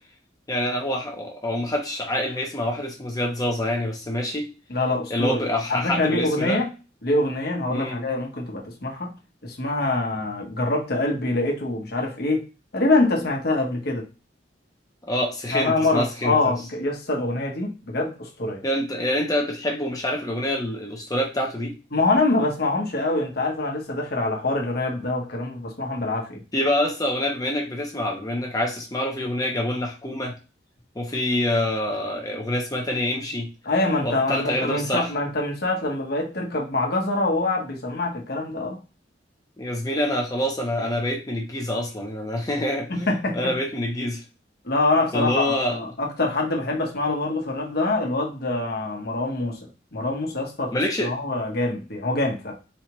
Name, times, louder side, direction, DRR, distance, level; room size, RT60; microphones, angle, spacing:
voice 1, 0.5-4.5 5.1-6.6 7.7-8.0 15.1-16.5 18.6-21.7 26.5-30.3 31.0-33.5 34.0-35.1 39.6-43.1 43.3-44.2 45.1-45.8 50.7-51.1, left 1 dB, 20° left, 1 dB, 0.7 m, -26 dB
voice 2, 4.7-5.4 5.7-6.7 7.0-12.5 12.7-14.1 15.5-18.6 21.9-26.4 33.6-38.8 42.9-43.6 44.6-49.6 49.9-52.6, left 2 dB, 60° left, 1 dB, 1.2 m, -25 dB
4.3 x 2.4 x 3.0 m, 0.31 s
head